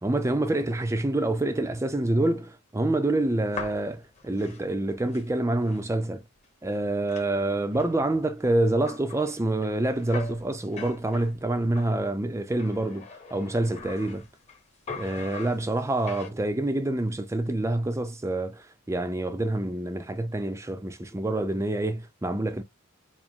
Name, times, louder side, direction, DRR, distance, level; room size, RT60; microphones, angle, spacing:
voice 1, 0.0-6.2 6.6-14.2 14.9-22.6, right 2 dB, 15° right, 0.5 m, -27 dB
sound 1, 3.3-5.9 6.4-6.5 6.7-11.9 12.5-14.6 14.9-16.3, left 4 dB, 30° left, 1.0 m, -43 dB
4.8 x 2.0 x 3.6 m
head